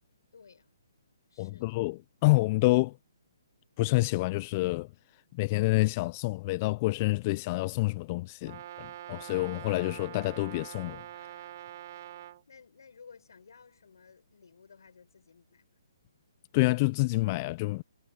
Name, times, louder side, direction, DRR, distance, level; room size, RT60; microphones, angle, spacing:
voice 1, 0.3-0.8 1.3-1.7 12.5-15.7, left 5 dB, 75° left, 7.0 m, -55 dB
voice 2, 1.4-2.9 3.8-4.9 5.3-11.0 16.5-17.8, left 22 dB, 30° left, 0.6 m, -28 dB
Brass instrument, 8.4-12.4, right 12 dB, 45° right, 3.0 m, -44 dB
hypercardioid pair, 145°, 2 cm